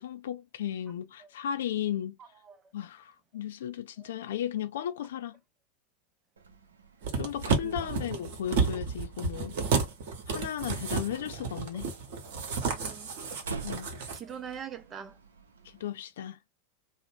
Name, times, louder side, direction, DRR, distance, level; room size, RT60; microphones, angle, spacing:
voice 1, 0.0-2.2 2.7-5.4 7.2-9.5 10.3-11.9 13.6-13.9 15.8-16.4, left 10 dB, 70° left, 0.4 m, -35 dB
Slam, 6.4-15.8, right 4 dB, 85° right, 0.5 m, -47 dB
sound 1, 7.0-14.2 14.5-14.6, right 4 dB, 65° right, 0.9 m, -31 dB
voice 2, 7.4-8.2 12.5-13.2 14.1-15.2, right 8 dB, 30° right, 0.6 m, -43 dB
2.6 x 2.1 x 2.9 m
hypercardioid pair, 90°, 0 cm